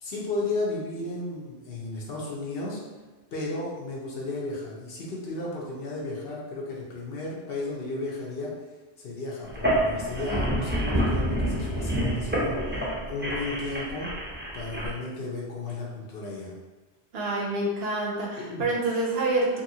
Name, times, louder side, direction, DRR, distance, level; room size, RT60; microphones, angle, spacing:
voice 1, 0.0-2.8 3.3-8.5 9.0-14.1 14.5-16.5 18.4-18.7, left 2 dB, 60° left, -4 dB, 0.8 m, -34 dB
sound 1, 9.5-14.9, right 1 dB, 15° right, 0.4 m, -28 dB
voice 2, 17.1-19.6, right 2 dB, 65° right, -2 dB, 0.7 m, -27 dB
2.8 x 2.6 x 2.7 m, 1.2 s
omnidirectional pair, 1.2 m